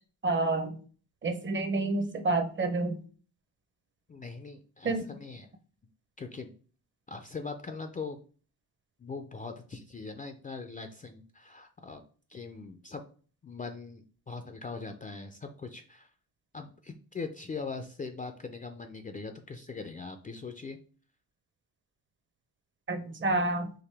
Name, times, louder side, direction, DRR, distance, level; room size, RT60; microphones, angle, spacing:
voice 1, 0.2-0.8 1.2-3.0 4.8-5.1 22.9-23.7, right 2 dB, 30° right, 8 dB, 0.7 m, -29 dB
voice 2, 4.1-5.5 6.2-6.5 7.1-8.2 9.0-12.0 12.3-13.0 13.4-16.1 16.5-20.8, left 4 dB, 25° left, 6 dB, 0.4 m, -41 dB
4.7 x 3.0 x 3.3 m, 0.40 s
cardioid pair, 125°, 37 cm